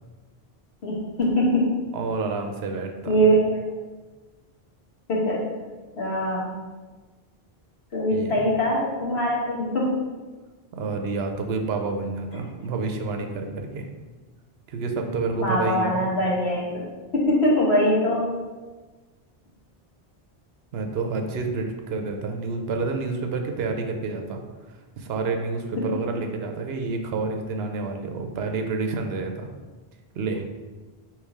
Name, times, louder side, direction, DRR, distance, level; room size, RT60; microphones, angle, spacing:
voice 1, 0.8-1.8 3.1-3.4 5.1-5.4 6.0-6.5 7.9-10.0 15.4-16.8 17.1-18.3 25.8-25.9, equal, 85° left, -5 dB, 1.5 m, -22 dB
voice 2, 1.9-3.3 8.1-8.3 10.7-13.9 14.7-16.0 20.7-24.4 24.7-29.5 30.1-30.5, right 3 dB, 75° right, 5 dB, 0.8 m, -29 dB
3.3 x 3.0 x 4.7 m, 1.3 s
omnidirectional pair, 1.0 m